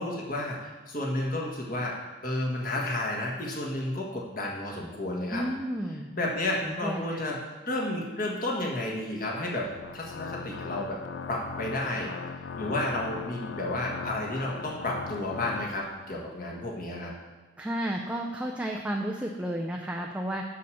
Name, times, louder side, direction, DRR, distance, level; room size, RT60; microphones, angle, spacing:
voice 1, 0.0-2.0 2.2-5.4 6.1-7.4 7.6-9.7 9.9-11.0 11.3-12.1 12.6-17.1, left 1 dB, 45° left, -2 dB, 1.7 m, -31 dB
voice 2, 5.3-6.1 6.6-7.0 17.6-20.4, right 1 dB, 5° right, -1 dB, 0.5 m, -32 dB
Organ, 9.6-16.2, left 5 dB, 80° left, 0.4 m, -39 dB
6.9 x 6.9 x 6.4 m, 1.2 s
head